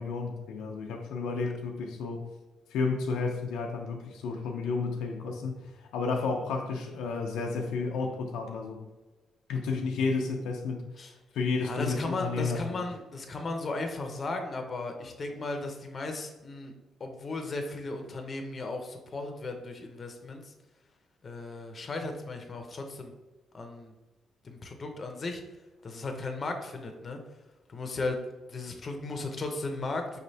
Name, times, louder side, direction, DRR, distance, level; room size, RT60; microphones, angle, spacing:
voice 1, 0.0-2.2 2.7-8.8 9.5-10.8 11.3-12.8, left 4 dB, 90° left, 2 dB, 0.5 m, -32 dB
voice 2, 11.6-16.7 17.0-20.5 21.2-23.1 23.5-23.9 24.4-25.4 25.8-27.2 27.7-28.2 28.5-30.2, left 2 dB, 40° left, 4 dB, 0.7 m, -36 dB
5.1 x 3.2 x 2.7 m, 1.2 s
cardioid pair, 90°, 0 cm